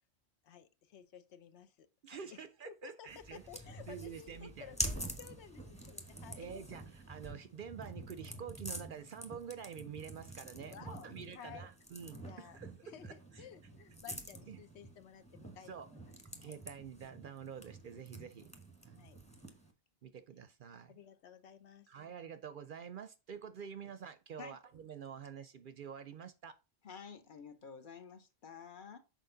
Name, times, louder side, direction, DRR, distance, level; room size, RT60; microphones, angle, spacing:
voice 1, 0.4-6.5 10.7-11.7 12.1-16.6 19.0-19.2 20.9-21.9, left 8 dB, 80° left, 0.9 m, -54 dB
voice 2, 2.0-3.4 3.9-4.7 6.4-12.7 13.0-13.4 14.1-14.2 14.5-14.6 15.6-15.9 16.4-18.5 18.8-19.3 20.0-20.9 21.9-26.6, right 7 dB, 60° right, 0.6 m, -48 dB
sound 1, 3.1-19.7, right 1 dB, 5° left, 1.0 m, -47 dB
voice 3, 26.8-29.0, left 6 dB, 50° left, 0.9 m, -50 dB
6.5 x 4.4 x 3.8 m
omnidirectional pair, 1.2 m